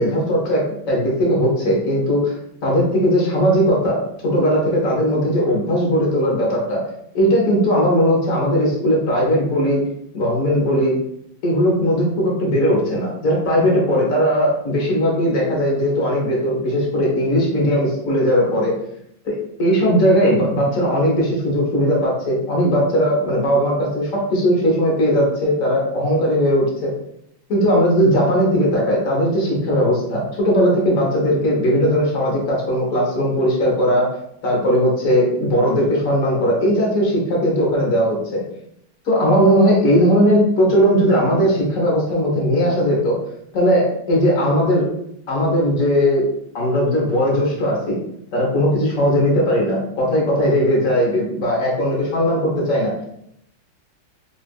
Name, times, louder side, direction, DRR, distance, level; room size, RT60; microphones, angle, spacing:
voice 1, 0.0-2.3 2.6-6.8 7.1-9.8 10.1-10.9 11.4-18.7 19.2-26.9 27.5-34.1 34.4-38.4 39.0-43.2 43.5-44.9 45.3-46.3 46.5-48.0 48.3-52.9, equal, 55° left, -3 dB, 1.1 m, -18 dB
3.5 x 2.4 x 2.2 m, 0.75 s
omnidirectional pair, 2.2 m